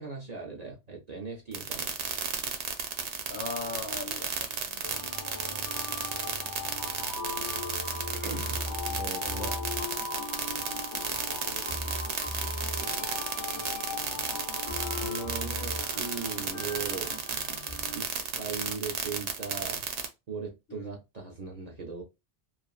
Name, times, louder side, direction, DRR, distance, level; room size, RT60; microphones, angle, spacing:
voice 1, 0.0-2.0 8.2-8.6 8.9-9.6 14.9-17.1 17.9-18.1 18.4-19.9 20.3-22.0, right 5 dB, 45° right, 0.7 m, -39 dB
sound 1, 1.5-20.1, right 7 dB, 80° right, 0.9 m, -32 dB
voice 2, 3.3-5.7 8.6-8.8 9.2-9.5 11.2-12.2 20.7-20.9, left 4 dB, 65° left, 1.1 m, -42 dB
sound 2, 4.8-18.0, left 3 dB, 20° left, 0.7 m, -38 dB
2.9 x 2.4 x 2.3 m
omnidirectional pair, 1.1 m